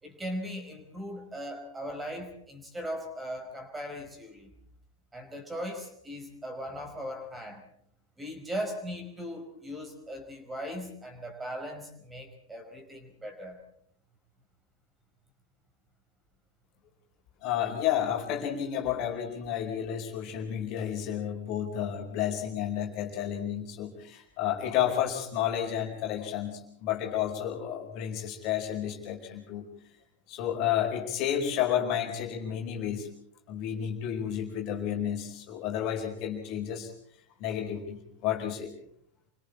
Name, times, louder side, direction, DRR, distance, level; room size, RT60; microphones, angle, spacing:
voice 1, 0.0-4.5 5.1-7.6 8.2-13.6, equal, 10° right, 5 dB, 4.9 m, -38 dB
voice 2, 17.4-29.7 30.3-33.1 33.5-36.9 37.4-38.7, left 10 dB, 40° left, 2 dB, 4.5 m, -31 dB
28.5 x 25.0 x 4.3 m, 0.66 s
figure-of-eight pair, 90°, 0 cm